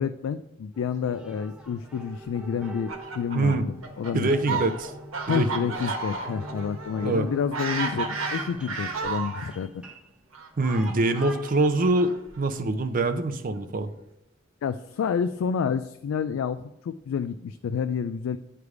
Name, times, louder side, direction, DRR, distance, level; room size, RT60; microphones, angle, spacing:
voice 1, 0.0-4.7 5.3-9.8 14.6-18.4, left 7 dB, 85° left, 11 dB, 0.3 m, -29 dB
sound 1, 0.7-11.5, right 1 dB, 5° right, 0.9 m, -44 dB
Fowl, 2.6-9.5 10.3-12.4, right 4 dB, 85° right, 1.2 m, -33 dB
voice 2, 3.3-3.7 4.1-4.9 5.3-5.7 7.0-7.3 10.6-13.9, right 2 dB, 45° right, 9 dB, 0.5 m, -24 dB
9.4 x 3.4 x 4.7 m, 0.82 s
head